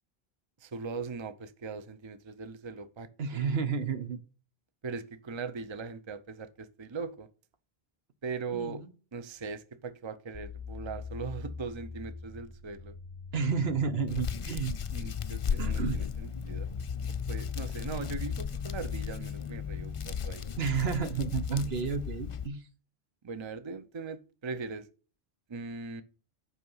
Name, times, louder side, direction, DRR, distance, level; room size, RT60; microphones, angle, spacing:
voice 1, 0.6-3.5 4.8-7.3 8.2-8.8 9.1-12.9 14.9-16.7 17.1-20.5 23.2-24.9 25.5-26.0, right 4 dB, 30° right, 0.7 m, -40 dB
voice 2, 3.2-4.2 8.5-8.9 13.3-14.8 15.6-16.0 20.6-22.7, right 6 dB, 75° right, 1.3 m, -31 dB
sound 1, 10.3-20.1, left 5 dB, 15° left, 1.0 m, -44 dB
Hands, 14.1-22.5, left 7 dB, 45° left, 0.5 m, -35 dB
8.4 x 5.5 x 5.5 m
omnidirectional pair, 1.0 m